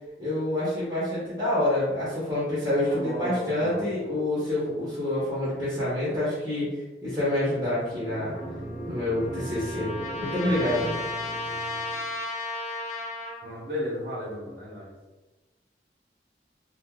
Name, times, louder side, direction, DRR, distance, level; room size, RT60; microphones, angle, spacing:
voice 1, 0.2-6.7 7.0-8.3 8.8-9.9 10.2-10.9, left 1 dB, 20° right, -9 dB, 0.8 m, -27 dB
voice 2, 2.9-3.9 13.4-14.9, equal, 60° right, -6 dB, 0.8 m, -34 dB
sound 1, 7.2-12.1, right 1 dB, 20° left, 0.7 m, -40 dB
Trumpet, 8.3-13.5, left 2 dB, 40° left, 0.4 m, -35 dB
2.4 x 2.3 x 3.5 m, 1.1 s
head